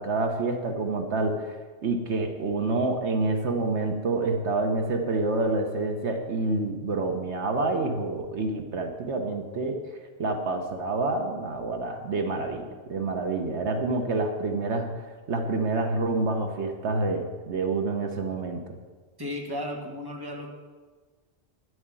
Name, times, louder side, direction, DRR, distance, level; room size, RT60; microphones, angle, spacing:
voice 1, 0.0-1.6 1.8-9.8 10.2-18.7, right 3 dB, 75° right, 4 dB, 1.3 m, -28 dB
voice 2, 19.2-20.5, left 1 dB, 20° right, -1 dB, 1.8 m, -34 dB
10.5 x 7.9 x 8.9 m, 1.4 s
omnidirectional pair, 1.2 m